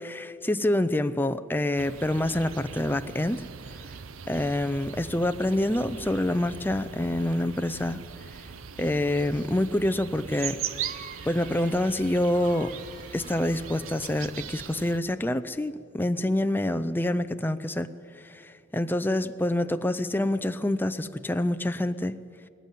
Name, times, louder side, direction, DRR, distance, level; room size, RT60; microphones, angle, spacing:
voice 1, 0.0-3.4 4.3-8.0 8.8-10.6 11.3-12.7 13.1-17.9 18.2-22.2, left 1 dB, 10° left, 10 dB, 0.5 m, -27 dB
sound 1, 1.8-15.0, right 7 dB, 90° right, 0.7 m, -40 dB
sound 2, 10.6-15.0, right 4 dB, 45° right, 1.8 m, -48 dB
20.0 x 17.5 x 9.2 m, 2.4 s
head